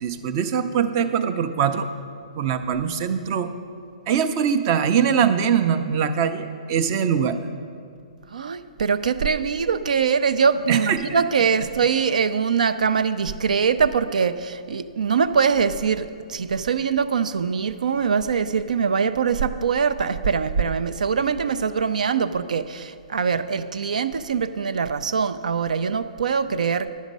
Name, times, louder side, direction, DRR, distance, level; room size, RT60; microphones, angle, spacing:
voice 1, 0.0-1.9 2.4-3.5 4.1-7.4 10.7-11.2, right 7 dB, 30° right, 10 dB, 0.5 m, -22 dB
voice 2, 8.3-26.9, right 6 dB, 80° right, 13 dB, 0.5 m, -23 dB
10.5 x 7.2 x 5.3 m, 2.3 s
hypercardioid pair, 160°, 4 cm